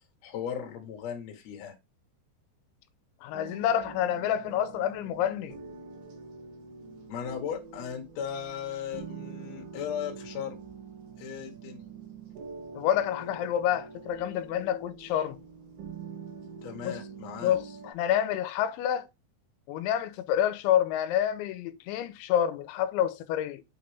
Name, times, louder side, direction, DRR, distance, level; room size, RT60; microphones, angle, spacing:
voice 1, 0.2-1.7 7.1-10.6 11.2-11.8 16.6-17.6, left 8 dB, 60° left, 1.8 m, -37 dB
voice 2, 3.2-5.6 12.8-15.4 16.8-17.0 17.4-19.1 19.7-23.6, left 10 dB, 90° left, 3.0 m, -28 dB
sound 1, 3.3-17.9, right 5 dB, 60° right, 2.6 m, -45 dB
8.4 x 3.8 x 3.4 m
omnidirectional pair, 5.3 m